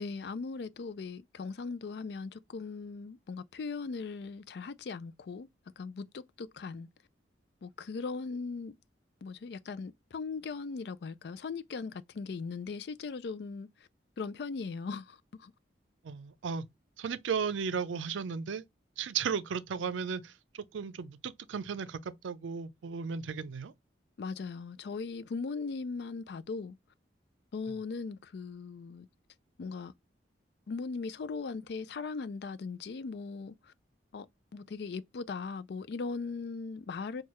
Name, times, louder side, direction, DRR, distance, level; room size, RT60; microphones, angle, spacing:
voice 1, 0.0-5.5 5.8-6.9 7.6-8.8 9.2-13.7 14.2-15.5 24.2-26.8 27.5-29.1 29.6-29.9 30.7-33.7 34.1-34.3 34.5-37.2, left 4 dB, 60° left, 0.4 m, -39 dB
voice 2, 16.0-16.7 17.0-18.6 19.0-23.7, right 6 dB, 85° right, 0.4 m, -35 dB
4.5 x 2.3 x 3.0 m
head